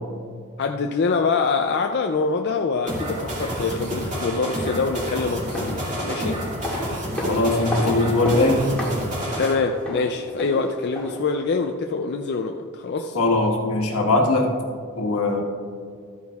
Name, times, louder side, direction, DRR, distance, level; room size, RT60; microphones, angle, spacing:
voice 1, 0.6-6.4 9.4-13.2, left 4 dB, 50° left, 4 dB, 0.4 m, -25 dB
sound 1, 2.9-9.5, equal, 35° right, 2.2 m, -29 dB
sound 2, 5.3-11.3 11.6-11.7, equal, 5° left, 1.8 m, -32 dB
voice 2, 7.2-8.6 13.1-14.5 15.0-15.4, left 2 dB, 80° left, 1 dB, 1.5 m, -20 dB
13.0 x 9.4 x 2.4 m, 2.1 s
head